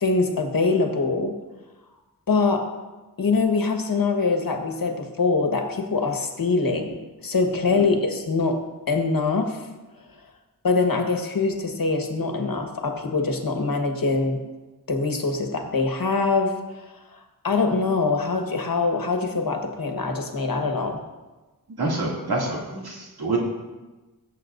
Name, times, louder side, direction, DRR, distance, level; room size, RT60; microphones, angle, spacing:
voice 1, 0.0-1.3 2.3-2.6 3.2-8.6 8.9-9.6 10.6-14.4 14.9-16.9 17.4-21.0, left 4 dB, 65° left, 3 dB, 1.4 m, -23 dB
voice 2, 21.8-23.4, right 3 dB, 85° right, -3 dB, 2.5 m, -27 dB
18.0 x 7.7 x 2.6 m, 1.2 s
wide cardioid pair, 85°, 37 cm